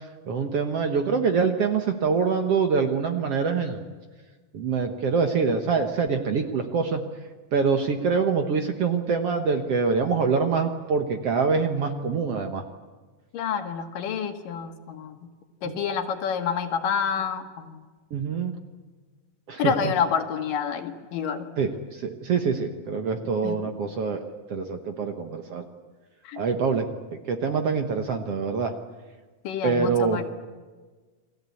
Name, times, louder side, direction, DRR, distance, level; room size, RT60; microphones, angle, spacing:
voice 1, 0.3-3.8 4.5-7.0 7.5-12.6 15.6-15.7 18.1-18.5 19.5-19.7 21.6-24.2 24.5-25.6 26.4-28.7 29.6-30.2, right 5 dB, 60° right, 5 dB, 1.8 m, -25 dB
voice 2, 13.3-15.2 15.6-17.8 19.6-21.5 23.4-23.6 26.2-26.4 29.4-30.2, left 7 dB, 75° left, 6 dB, 3.3 m, -28 dB
29.0 x 21.0 x 8.4 m, 1.4 s
omnidirectional pair, 4.0 m